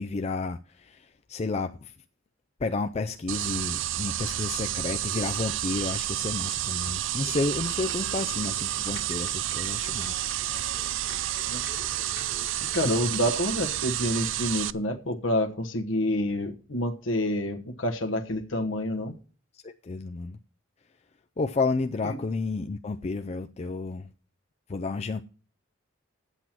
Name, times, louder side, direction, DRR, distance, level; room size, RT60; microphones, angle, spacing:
voice 1, 0.0-1.9 2.6-10.2 12.6-12.9 19.5-20.4 21.4-24.1 24.7-25.2, left 3 dB, 35° left, 0.4 m, -31 dB
sound 1, 3.3-14.7, right 13 dB, 70° right, 0.4 m, -30 dB
sound 2, 7.2-12.9, left 4 dB, 55° left, 1.7 m, -47 dB
voice 2, 12.7-19.1 22.0-22.2, left 1 dB, 75° left, 1.2 m, -28 dB
9.0 x 8.1 x 6.0 m
head